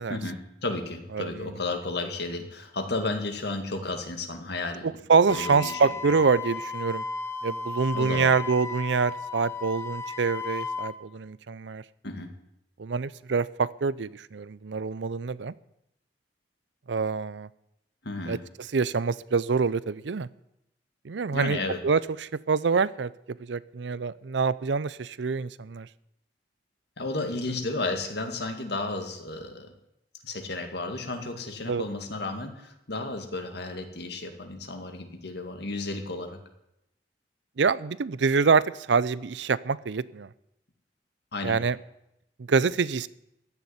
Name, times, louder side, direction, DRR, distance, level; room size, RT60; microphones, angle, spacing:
voice 1, 0.1-4.9 5.3-6.1 7.9-8.3 12.0-12.3 18.0-18.4 21.3-21.8 27.0-29.7 30.2-36.4 41.3-41.6, left 2 dB, 65° left, 6 dB, 2.1 m, -33 dB
voice 2, 5.1-7.0 7.4-11.8 12.8-15.5 16.9-17.5 18.3-18.4 18.7-20.3 21.0-21.6 21.8-23.1 23.4-25.9 31.7-31.8 37.6-40.3 41.4-41.8 42.5-43.1, right 5 dB, 80° right, 19 dB, 0.5 m, -25 dB
Wind instrument woodwind instrument, 5.3-10.9, left 4 dB, 15° left, 1.0 m, -35 dB
14.5 x 7.1 x 9.6 m, 0.83 s
head